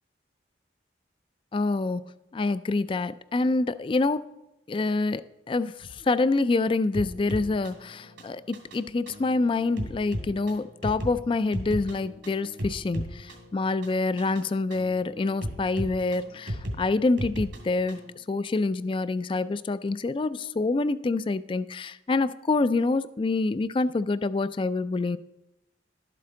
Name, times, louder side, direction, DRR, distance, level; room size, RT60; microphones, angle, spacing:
voice 1, 1.5-2.0 2.3-4.3 4.7-5.2 5.5-18.0 18.3-25.2, left 3 dB, 30° left, 0.3 m, -26 dB
sound 1, 6.9-18.2, equal, 90° right, 2.4 m, -37 dB
12.0 x 7.6 x 3.8 m
head